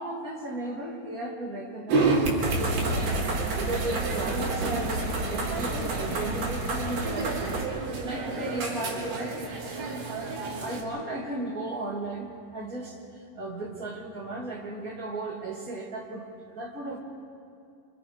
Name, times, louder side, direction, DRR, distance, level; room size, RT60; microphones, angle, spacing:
voice 1, 0.0-2.4 2.9-3.2 3.6-9.5 9.9-10.1 10.6-17.0, right 2 dB, 25° right, -2 dB, 2.7 m, -35 dB
sound 1, 1.9-10.8, right 3 dB, 90° right, 4.8 m, -31 dB
sound 2, 2.4-7.7, right 2 dB, 45° right, 3.0 m, -30 dB
26.0 x 25.5 x 4.9 m, 2.3 s
omnidirectional pair, 4.6 m